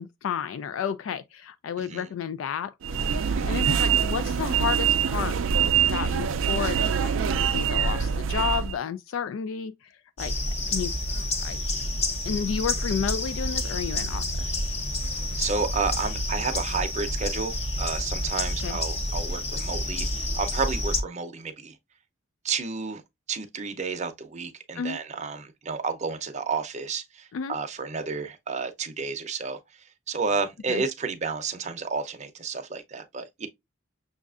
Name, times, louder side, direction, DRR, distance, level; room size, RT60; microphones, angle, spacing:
voice 1, 0.0-9.7 10.2-10.3 10.7-10.9 11.4-11.6 12.3-14.5 18.6-18.8 24.8-25.0 27.3-27.5 30.7-30.8, left 7 dB, 70° left, 0.3 m, -32 dB
voice 2, 1.8-2.1 3.4-3.6 15.4-20.1 20.3-21.7 22.4-23.0 23.3-29.6 30.1-33.5, right 4 dB, 35° right, 0.6 m, -31 dB
sound 1, 2.8-8.8, right 7 dB, 75° right, 0.4 m, -24 dB
sound 2, 10.2-21.0, left 1 dB, 30° left, 0.7 m, -29 dB
6.3 x 2.4 x 2.4 m
head